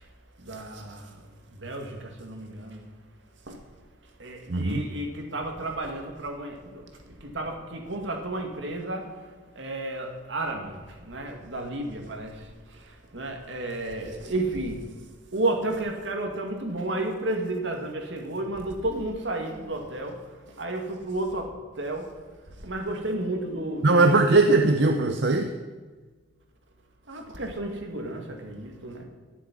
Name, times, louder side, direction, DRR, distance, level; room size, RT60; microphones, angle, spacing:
voice 1, 0.4-2.9 3.4-3.6 4.2-9.3 9.6-14.9 15.3-22.1 22.6-24.6 27.1-29.0, right 2 dB, 80° right, 3 dB, 2.2 m, -32 dB
voice 2, 4.5-4.8 23.8-25.5, right 3 dB, 65° right, 6 dB, 0.7 m, -20 dB
10.5 x 7.6 x 9.7 m, 1.4 s
head